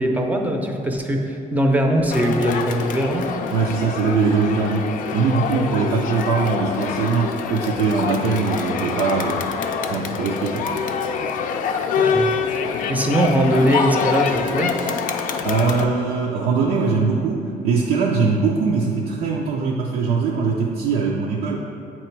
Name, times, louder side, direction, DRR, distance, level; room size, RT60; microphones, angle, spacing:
voice 1, 0.0-3.3 12.0-12.3 12.5-12.6 12.9-14.8, right 1 dB, 10° right, 2 dB, 0.5 m, -21 dB
Crowd, 2.1-15.8, left 6 dB, 65° left, 0.4 m, -25 dB
voice 2, 3.5-9.4 9.9-10.7 15.4-21.6, right 4 dB, 85° right, -2 dB, 0.5 m, -21 dB
8.2 x 3.0 x 4.5 m, 2.5 s
cardioid pair, 140°, 15 cm